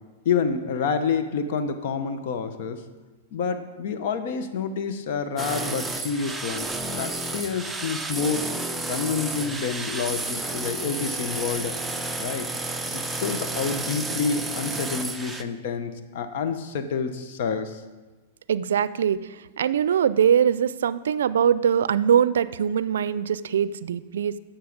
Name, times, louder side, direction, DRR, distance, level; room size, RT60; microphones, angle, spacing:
voice 1, 0.2-2.8 3.3-6.7 7.0-8.5 8.9-11.7 12.2-12.5 12.9-17.8, left 6 dB, 65° left, 9 dB, 0.9 m, -28 dB
sound 1, 5.4-15.4, right 2 dB, 5° right, 0.6 m, -31 dB
voice 2, 18.5-19.2 19.6-24.4, right 8 dB, 85° right, 16 dB, 0.4 m, -22 dB
10.5 x 7.3 x 5.2 m, 1.2 s
hypercardioid pair, 130°, 0 cm